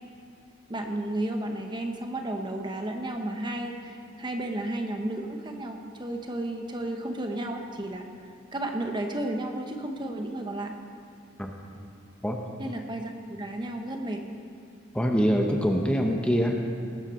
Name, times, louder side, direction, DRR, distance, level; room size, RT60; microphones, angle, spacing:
voice 1, 0.7-8.1 8.5-10.7 12.6-14.2, right 1 dB, 20° right, 3 dB, 0.9 m, -33 dB
voice 2, 14.9-16.6, equal, 5° left, 1 dB, 0.8 m, -24 dB
19.0 x 7.3 x 6.4 m, 2.4 s
head